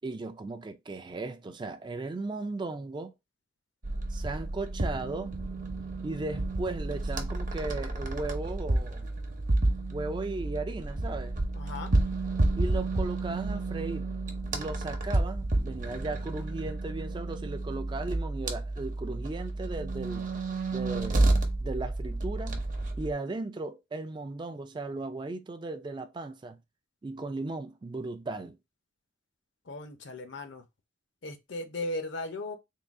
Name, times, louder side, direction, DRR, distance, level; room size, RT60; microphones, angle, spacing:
voice 1, 0.0-3.1 4.1-5.3 6.0-9.1 9.9-11.4 12.5-14.1 14.5-20.3 20.7-21.3 21.6-22.6 23.0-26.6 27.0-28.6, right 3 dB, 25° right, 0.3 m, -36 dB
sound 1, 3.8-23.1, right 2 dB, 40° right, 0.7 m, -30 dB
voice 2, 11.5-11.9 29.7-30.6 31.2-32.6, left 2 dB, 65° left, 0.7 m, -37 dB
3.7 x 2.3 x 3.5 m
head